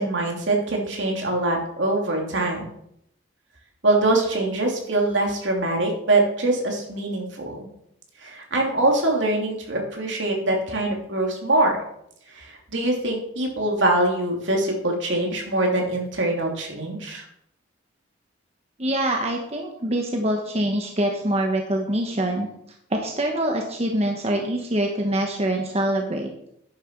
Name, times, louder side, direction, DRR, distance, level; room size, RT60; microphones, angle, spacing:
voice 1, 0.0-2.7 3.8-7.6 8.2-11.7 12.3-17.2, right 2 dB, 70° right, 0 dB, 2.8 m, -23 dB
voice 2, 18.8-22.5 22.9-26.3, right 1 dB, 30° right, 2 dB, 1.1 m, -24 dB
10.0 x 6.9 x 5.9 m, 0.74 s
head